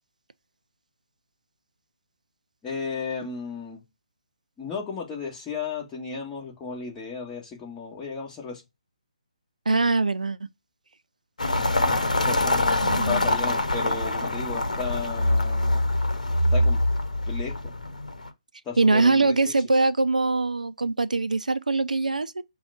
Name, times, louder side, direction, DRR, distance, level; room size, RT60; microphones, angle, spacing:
voice 1, 2.6-3.8 4.6-8.6 12.2-12.6 12.9-15.8 16.5-16.8 17.3-17.7 18.6-19.5, left 5 dB, 15° left, 1.7 m, -34 dB
voice 2, 9.7-10.4 12.8-13.2 18.8-22.4, right 3 dB, 85° right, 0.4 m, -22 dB
sound 1, 11.4-18.3, left 1 dB, 80° left, 0.9 m, -24 dB
5.6 x 2.3 x 4.2 m
figure-of-eight pair, 140°, 4 cm